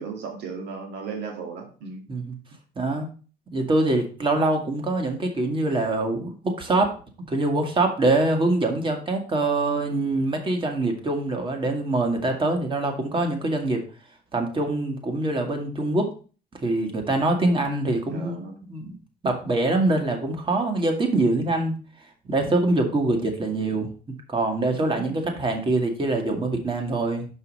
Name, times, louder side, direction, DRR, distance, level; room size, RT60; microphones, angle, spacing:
voice 1, 0.0-2.0 18.1-18.6 24.9-25.4, right 4 dB, 80° right, 2 dB, 2.2 m, -36 dB
voice 2, 2.8-3.1 3.5-6.9 7.3-13.8 14.3-16.1 16.6-18.4 18.7-19.0 19.2-21.7 22.3-23.9 24.3-27.3, right 2 dB, 30° right, 4 dB, 1.9 m, -24 dB
6.1 x 5.5 x 5.3 m, 0.38 s
cardioid pair, 110°, 17 cm